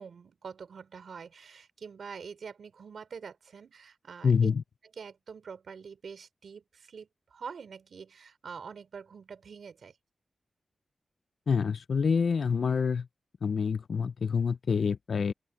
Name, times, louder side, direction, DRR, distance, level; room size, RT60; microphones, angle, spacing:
voice 1, 0.0-4.5 4.8-10.0, right 6 dB, 75° right, 4.5 m, -45 dB
voice 2, 4.2-4.6 11.5-13.1 13.4-15.3, left 6 dB, 65° left, 0.7 m, -27 dB
open air
wide cardioid pair, 130°, 0 cm